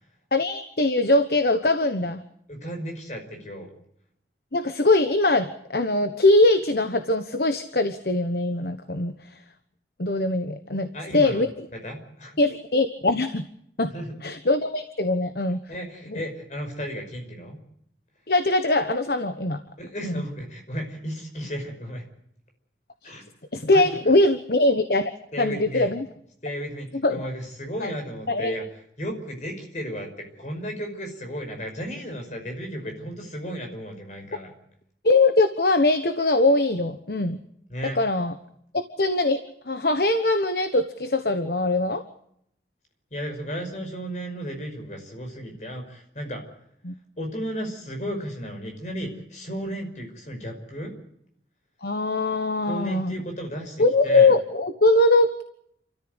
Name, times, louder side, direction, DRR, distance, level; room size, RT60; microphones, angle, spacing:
voice 1, 0.3-2.2 4.5-9.1 10.0-11.5 12.4-13.5 13.8-13.9 14.2-15.6 16.1-16.2 18.3-19.6 20.0-20.2 23.0-23.1 23.5-25.1 25.4-26.1 27.0-27.3 27.8-27.9 28.3-28.5 35.0-37.4 37.9-38.3 38.7-39.4 39.6-42.0 46.8-46.9 51.8-53.1 53.8-55.4, left 2 dB, 60° left, 9 dB, 1.2 m, -22 dB
voice 2, 2.5-3.7 10.9-12.4 13.9-14.2 15.7-17.6 19.8-22.1 23.0-23.2 23.7-24.0 25.3-25.9 26.4-28.7 29.0-34.5 37.7-38.0 43.1-46.4 47.2-50.9 52.7-54.3, equal, 40° left, 4 dB, 5.5 m, -34 dB
29.5 x 14.0 x 8.1 m, 0.73 s
head